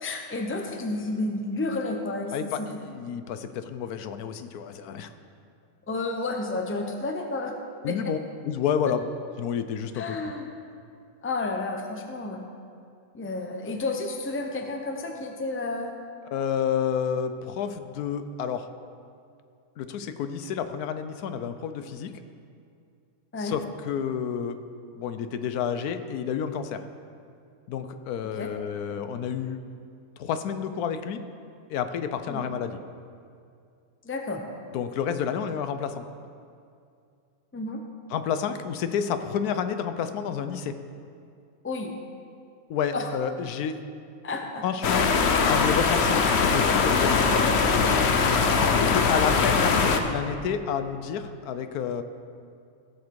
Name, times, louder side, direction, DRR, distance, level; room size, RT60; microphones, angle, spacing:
voice 1, 0.0-2.7 5.9-7.5 7.9-8.0 9.9-10.5 11.2-12.4 13.1-15.9 23.3-23.5 28.4-28.5 32.3-32.5 34.0-34.4 37.5-37.8 41.6-41.9 42.9-43.1 44.2-44.6 44.9-45.5 47.2-47.7 48.4-48.9, left 2 dB, 15° left, 3 dB, 0.6 m, -31 dB
voice 2, 2.3-5.1 7.8-8.2 8.4-9.0 9.4-10.2 16.3-18.7 19.8-22.1 23.4-24.6 24.9-26.8 27.7-29.6 30.2-31.2 31.7-32.8 34.7-36.0 38.1-40.7 42.7-43.8 44.6-45.1 45.5-47.2 48.8-52.0, left 7 dB, 90° left, 9 dB, 1.2 m, -30 dB
sound 1, 44.8-50.0, left 5 dB, 55° left, 0.9 m, -21 dB
15.5 x 7.3 x 4.7 m, 2.4 s
omnidirectional pair, 1.6 m